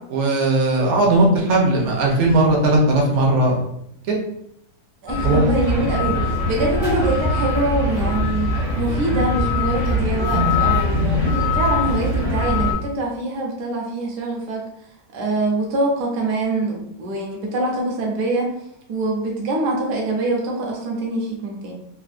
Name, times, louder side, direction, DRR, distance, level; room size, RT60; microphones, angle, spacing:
voice 1, 0.1-3.6 4.1-4.2 5.2-5.4, right 2 dB, 55° right, -1 dB, 0.9 m, -17 dB
voice 2, 5.0-8.5 8.8-11.2 11.5-14.6 15.1-18.5 18.9-21.7, right 2 dB, 75° right, -1 dB, 1.3 m, -24 dB
sound 1, 5.1-12.7, left 2 dB, 35° left, 0.5 m, -21 dB
3.6 x 2.5 x 2.5 m, 0.75 s
omnidirectional pair, 1.8 m